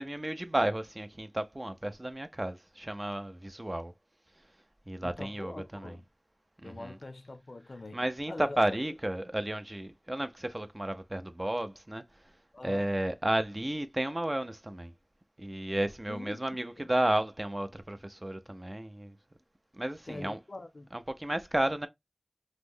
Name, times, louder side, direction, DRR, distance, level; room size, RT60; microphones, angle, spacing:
voice 1, 0.0-3.9 4.9-5.9 6.6-7.0 7.9-12.0 12.6-14.9 15.4-19.1 19.8-20.4 20.9-21.9, right 1 dB, 35° right, 0.5 m, -32 dB
voice 2, 5.0-6.0 6.6-8.6 12.5-12.9 16.1-16.9 20.1-20.9, left 2 dB, 90° left, 0.4 m, -43 dB
3.0 x 2.1 x 3.5 m
wide cardioid pair, 45°, 0 cm